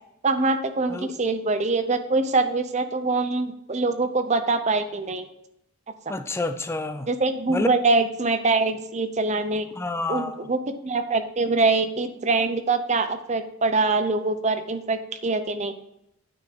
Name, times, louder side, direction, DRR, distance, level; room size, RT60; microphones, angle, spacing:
voice 1, 0.2-5.3 7.1-9.7 10.1-15.7, right 3 dB, 35° right, 0.6 m, -24 dB
voice 2, 6.1-7.1 7.5-7.7 9.8-10.4, left 2 dB, 10° left, 0.3 m, -28 dB
9.3 x 4.4 x 5.2 m
head